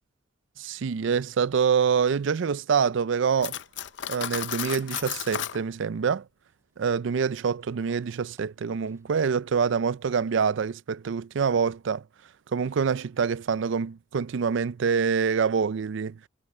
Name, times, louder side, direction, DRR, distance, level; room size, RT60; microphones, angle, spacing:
voice 1, 0.6-3.6 4.1-6.2 6.8-12.0 12.5-16.2, right 6 dB, 65° right, 0.4 m, -26 dB
Cutlery silverware, 3.4-5.6, left 10 dB, 60° left, 0.5 m, -33 dB
sound 1, 6.2-9.3, right 2 dB, 15° right, 5.1 m, -66 dB
head